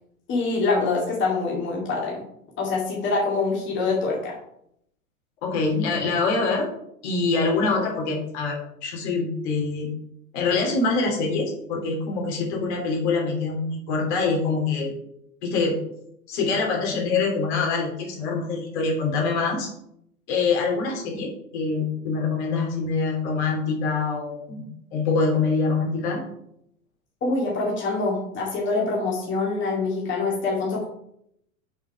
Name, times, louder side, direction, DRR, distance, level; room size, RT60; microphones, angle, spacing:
voice 1, 0.3-2.2 2.6-4.3 27.2-30.8, left 3 dB, 25° left, -3 dB, 2.3 m, -25 dB
voice 2, 5.4-6.7 7.0-9.9 10.3-14.9 15.4-15.8 16.3-19.7 20.3-24.6 24.9-26.2, left 4 dB, 50° left, 0 dB, 3.2 m, -25 dB
6.9 x 5.9 x 5.5 m, 0.74 s
figure-of-eight pair, 95°, 42 cm